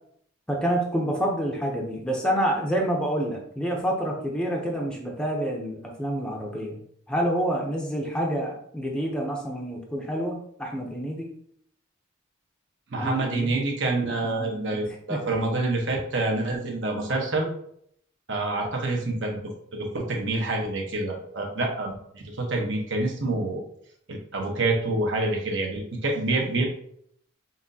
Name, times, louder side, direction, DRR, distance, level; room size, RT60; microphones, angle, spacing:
voice 1, 0.5-6.8 7.1-11.3 13.0-13.5 14.2-14.8 15.1-15.2, equal, 5° left, -1 dB, 0.6 m, -28 dB
voice 2, 12.9-17.5 18.3-19.4 19.7-23.6 24.1-26.6, right 2 dB, 60° right, 0 dB, 1.0 m, -27 dB
5.8 x 2.6 x 2.7 m, 0.67 s
head